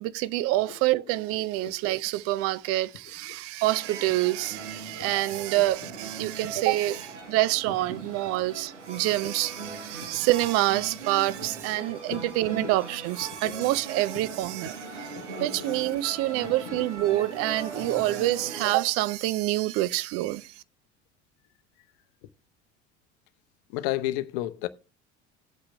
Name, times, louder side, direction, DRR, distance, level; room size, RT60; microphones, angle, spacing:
voice 1, 0.0-20.5, right 17 dB, 45° right, 0.4 m, -27 dB
sound 1, 3.7-18.8, right 4 dB, 80° right, 1.3 m, -40 dB
voice 2, 15.3-15.7 16.7-16.8 23.7-24.7, left 15 dB, 55° left, 0.7 m, -32 dB
17.5 x 8.5 x 2.2 m
figure-of-eight pair, 60°, 35 cm